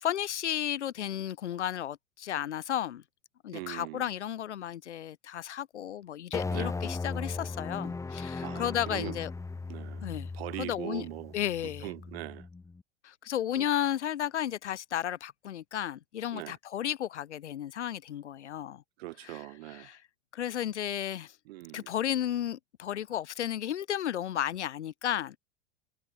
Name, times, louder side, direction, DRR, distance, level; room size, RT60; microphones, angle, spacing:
voice 1, 0.0-3.0 3.4-9.3 10.0-10.3 10.6-11.1 11.3-11.9 13.0-18.8 19.2-20.0 20.3-21.3 21.7-25.4, left 11 dB, 75° left, 1.0 m, -33 dB
voice 2, 3.5-4.0 6.5-6.7 8.4-9.2 9.7-10.1 10.3-11.3 11.6-12.5 13.6-13.7 16.3-16.6 19.0-19.9 21.5-21.9, right 19 dB, 60° right, 0.7 m, -41 dB
sound 1, 6.3-12.8, left 3 dB, 10° left, 0.9 m, -37 dB
figure-of-eight pair, 80°, 35 cm